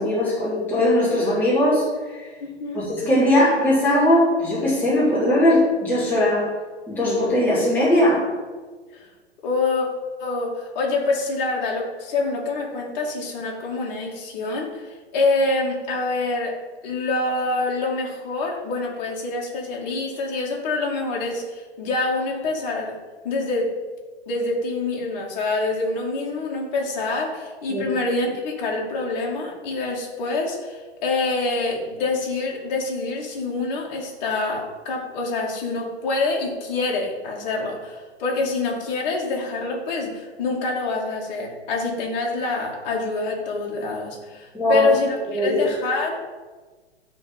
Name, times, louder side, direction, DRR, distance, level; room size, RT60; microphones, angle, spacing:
voice 1, 0.0-2.3 2.7-6.5 6.9-8.3 27.7-27.8 44.5-44.9 45.3-45.6, left 1 dB, 5° left, -10 dB, 3.9 m, -20 dB
voice 2, 2.4-2.8 8.9-9.1 9.4-9.9 10.2-16.5 16.8-23.0 23.2-23.7 24.3-46.2, left 3 dB, 40° left, -2 dB, 2.7 m, -26 dB
13.0 x 4.6 x 7.5 m, 1.4 s
figure-of-eight pair, 110°, 33 cm